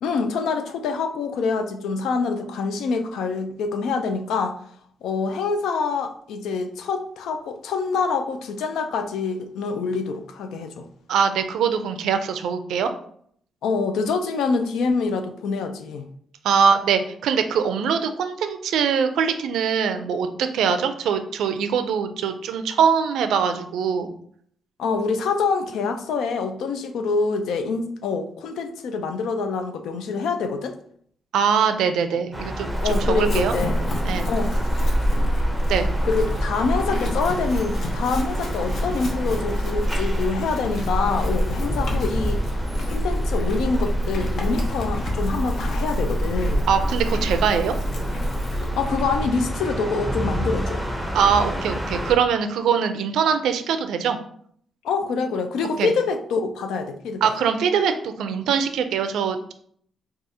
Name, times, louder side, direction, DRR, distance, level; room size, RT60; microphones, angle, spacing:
voice 1, 0.0-4.6 5.0-10.9 13.6-16.0 24.8-30.8 32.1-32.2 32.8-33.8 34.3-34.5 36.0-42.4 42.8-46.7 48.8-50.8 54.8-57.3, left 4 dB, 90° left, 7 dB, 0.4 m, -26 dB
voice 2, 11.1-12.9 16.4-24.1 31.3-33.5 34.0-34.3 35.7-35.9 46.7-47.7 51.1-54.2 55.8-55.9 57.2-59.5, right 7 dB, 90° right, 8 dB, 0.4 m, -22 dB
sound 1, 32.3-52.2, right 1 dB, ahead, 0.7 m, -30 dB
Chewing mastication / Livestock farm animals working animals, 32.7-49.2, equal, 60° left, 0.8 m, -26 dB
4.7 x 2.4 x 2.7 m, 0.63 s
cardioid pair, 105°, 0 cm